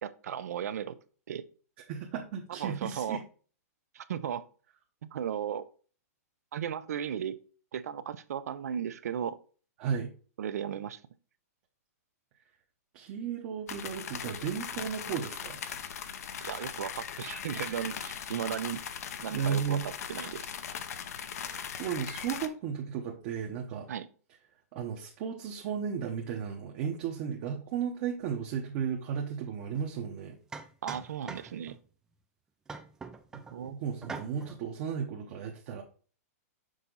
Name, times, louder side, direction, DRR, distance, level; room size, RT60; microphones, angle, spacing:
voice 1, 0.0-1.0 1.3-1.4 2.6-3.2 3.9-4.5 5.1-5.7 6.5-7.4 7.7-9.4 10.4-11.0 16.4-18.8 19.2-20.5 23.9-24.1 30.8-31.8 33.5-33.7, right 9 dB, 75° right, 14 dB, 0.6 m, -35 dB
voice 2, 1.9-3.2 9.8-10.1 12.9-15.6 19.3-19.9 21.4-23.9 24.7-30.4 33.5-35.8, right 7 dB, 35° right, 1 dB, 0.8 m, -34 dB
sound 1, 13.7-22.5, left 8 dB, 70° left, 0.7 m, -39 dB
sound 2, 29.7-29.9 30.5-31.8 32.7-33.6 34.0-34.6, right 4 dB, 5° right, 0.3 m, -43 dB
6.4 x 4.1 x 3.8 m, 0.39 s
hypercardioid pair, 160°, 9 cm